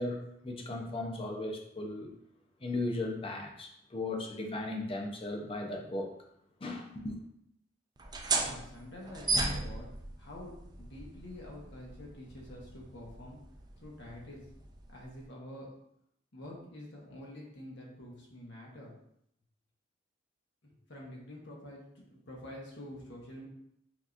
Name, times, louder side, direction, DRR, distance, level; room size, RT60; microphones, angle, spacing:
voice 1, 0.0-2.1 2.6-6.2 6.6-7.2, left 2 dB, 30° left, 2 dB, 0.6 m, -36 dB
sound 1, 8.0-15.2, right 3 dB, 20° right, 0.4 m, -37 dB
voice 2, 8.3-9.9 10.2-13.4 13.8-14.4 14.9-15.7 16.3-18.9 20.6-23.5, left 1 dB, 65° left, -3 dB, 1.2 m, -47 dB
5.9 x 2.9 x 2.5 m, 0.73 s
head